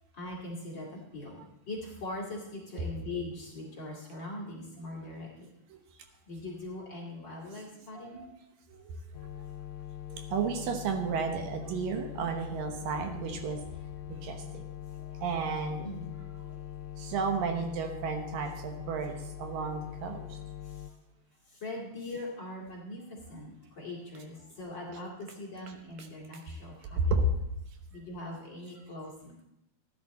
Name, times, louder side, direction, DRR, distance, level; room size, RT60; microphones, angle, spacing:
voice 1, 0.1-5.5 6.3-8.2 15.8-16.1 20.6-20.9 21.5-27.0 27.9-29.4, left 2 dB, 35° left, -3 dB, 2.3 m, -41 dB
voice 2, 7.9-8.3 8.7-9.0 10.1-13.6 14.1-14.6 15.0-15.9 16.6-16.7 17.0-20.4 26.0-26.1 27.0-27.2, right 5 dB, 75° right, 5 dB, 2.7 m, -33 dB
sound 1, 9.1-20.9, left 12 dB, 75° left, 2.1 m, -42 dB
14.0 x 10.5 x 4.2 m, 0.86 s
omnidirectional pair, 4.1 m